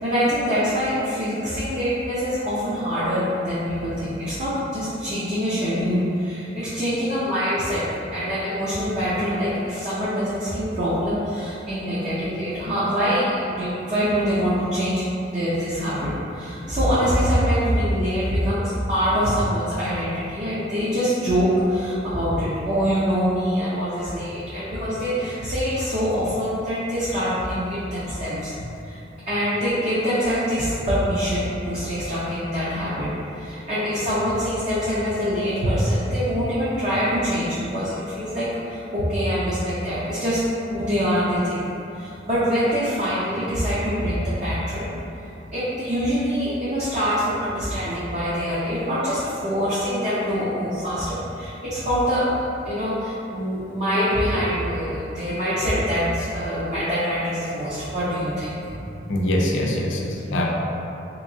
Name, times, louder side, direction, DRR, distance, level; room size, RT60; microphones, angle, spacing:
voice 1, 0.0-7.8 8.1-15.1 15.3-28.5 28.8-29.0 29.3-33.1 33.3-41.6 41.9-44.9 45.2-52.2 52.6-58.8 60.0-60.1, equal, 35° right, -11 dB, 0.6 m, -24 dB
voice 2, 59.1-60.4, left 1 dB, 85° left, -1 dB, 0.5 m, -23 dB
3.5 x 2.9 x 2.6 m, 2.8 s
head